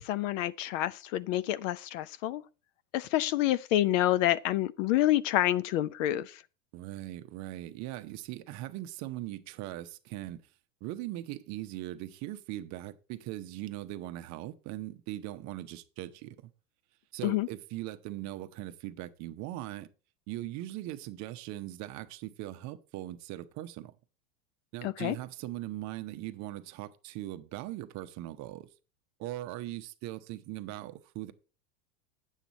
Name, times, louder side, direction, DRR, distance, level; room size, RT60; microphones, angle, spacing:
voice 1, 0.0-2.4 2.9-6.4 17.2-17.5 24.8-25.2, left 14 dB, 55° left, 0.6 m, -28 dB
voice 2, 6.7-10.4 10.8-16.5 17.1-19.9 20.3-23.9 24.7-28.7 29.2-31.3, right 15 dB, 40° right, 0.8 m, -40 dB
8.8 x 7.3 x 4.1 m
supercardioid pair, 130°, 45 cm